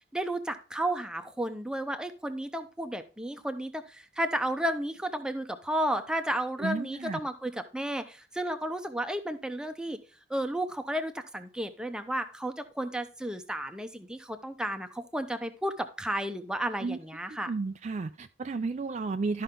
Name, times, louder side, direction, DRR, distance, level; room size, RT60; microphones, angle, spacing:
voice 1, 0.1-10.0 10.3-17.5, right 1 dB, 5° right, 7 dB, 0.7 m, -33 dB
voice 2, 6.6-7.2 16.8-17.0 17.5-19.4, right 4 dB, 35° right, 9 dB, 0.3 m, -32 dB
12.5 x 5.5 x 3.7 m, 0.36 s
head